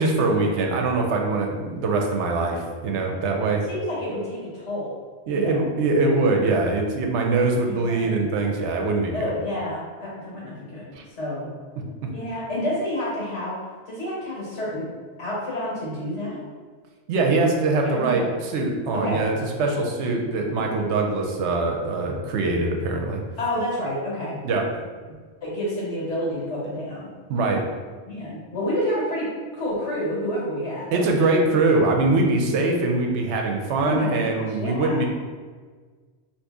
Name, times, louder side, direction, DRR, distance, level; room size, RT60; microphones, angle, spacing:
voice 1, 0.0-3.6 5.3-9.3 10.9-11.0 12.0-12.1 17.1-19.3 19.6-23.2 24.4-24.6 27.3-27.6 30.9-35.1, right 3 dB, 75° right, 1 dB, 0.9 m, -23 dB
voice 2, 3.7-4.9 5.3-5.7 7.7-8.2 9.1-11.5 12.1-13.6 13.9-14.9 15.2-16.4 17.8-18.3 18.9-19.3 23.4-24.4 25.4-27.1 28.1-29.3 29.5-31.0 31.3-31.4 33.8-35.0, left 1 dB, 85° left, -6 dB, 1.5 m, -29 dB
2.8 x 2.7 x 3.5 m, 1.5 s
omnidirectional pair, 1.2 m